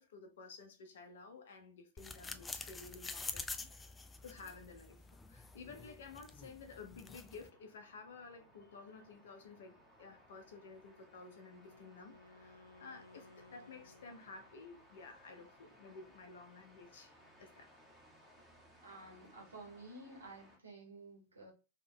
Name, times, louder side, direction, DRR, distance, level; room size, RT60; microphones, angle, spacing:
voice 1, 0.0-3.9 4.2-17.1 17.4-17.7, left 4 dB, 60° left, 1.1 m, -53 dB
sound 1, 2.0-7.5, left 3 dB, 15° left, 0.5 m, -47 dB
sound 2, 4.2-20.6, equal, 5° right, 1.8 m, -64 dB
Wind instrument woodwind instrument, 10.9-14.8, left 2 dB, 85° left, 0.6 m, -61 dB
voice 2, 18.8-21.5, right 2 dB, 75° right, 1.5 m, -52 dB
3.5 x 3.4 x 3.4 m
figure-of-eight pair, 90°, 0 cm